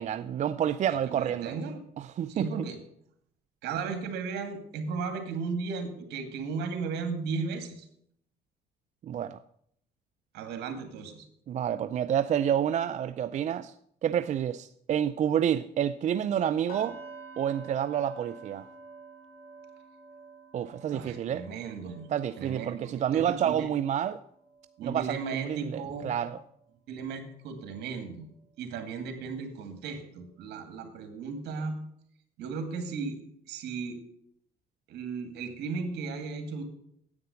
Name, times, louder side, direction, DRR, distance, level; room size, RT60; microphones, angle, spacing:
voice 1, 0.0-1.5 2.0-2.7 9.0-9.4 11.5-13.7 14.0-17.0 17.4-18.7 20.5-21.4 22.1-24.2 24.8-26.4, right 9 dB, 45° right, 0.5 m, -29 dB
voice 2, 0.9-1.8 2.3-2.8 3.6-7.9 10.3-11.3 20.9-22.1 22.4-23.7 24.8-26.1 26.9-28.3 28.6-31.8 32.4-33.2 33.5-34.0 34.9-36.6, right 5 dB, 75° right, 2.2 m, -35 dB
sound 1, 16.7-26.6 26.9-27.2 27.7-27.8, right 3 dB, 70° left, 6.0 m, -50 dB
9.7 x 8.6 x 7.0 m
cardioid pair, 110°, 17 cm